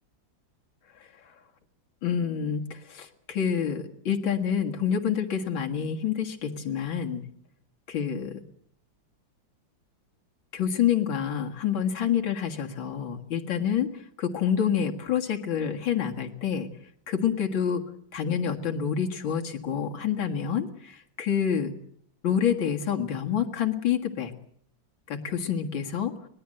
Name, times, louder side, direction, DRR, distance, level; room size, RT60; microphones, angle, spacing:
voice 1, 2.0-7.3 7.9-8.4 10.5-16.7 17.1-17.8 18.1-21.7 22.2-24.3 25.1-26.2, left 8 dB, 80° left, 2 dB, 2.6 m, -27 dB
24.5 x 19.5 x 7.7 m, 0.63 s
omnidirectional pair, 2.1 m